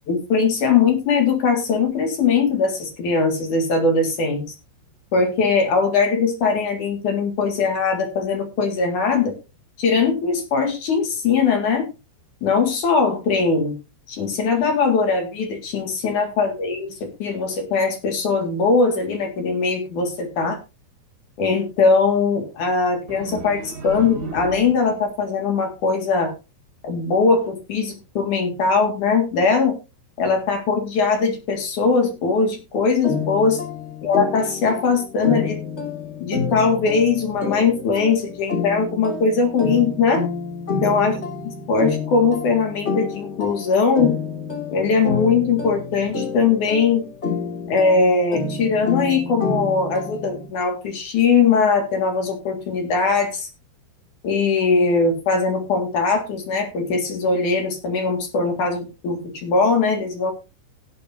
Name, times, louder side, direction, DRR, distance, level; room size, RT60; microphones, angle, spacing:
voice 1, 0.1-4.4 5.1-9.3 9.8-11.9 12.4-13.7 14.1-20.6 21.4-26.3 26.8-29.8 30.2-33.6 34.0-35.6 36.2-40.3 40.8-41.2 41.7-44.2 44.7-47.1 47.7-53.5 54.2-60.3, left 4 dB, 55° left, 5 dB, 2.9 m, -20 dB
sound 1, 23.1-25.1, right 3 dB, 70° right, 5.2 m, -34 dB
sound 2, 33.0-50.5, left 4 dB, 25° left, 1.5 m, -29 dB
18.0 x 8.6 x 2.7 m, 0.28 s
omnidirectional pair, 5.2 m